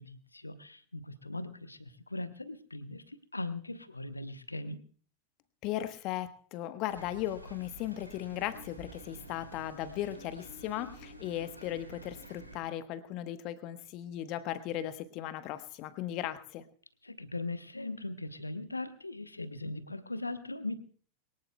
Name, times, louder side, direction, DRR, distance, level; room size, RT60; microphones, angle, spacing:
voice 1, 0.0-4.8 17.0-20.8, left 2 dB, 80° left, 12 dB, 1.1 m, -39 dB
voice 2, 5.6-16.6, left 12 dB, 40° left, 12 dB, 1.2 m, -37 dB
sound 1, 6.9-12.6, right 1 dB, 85° right, 2.0 m, -50 dB
22.5 x 18.0 x 2.3 m, 0.43 s
figure-of-eight pair, 90°, 0 cm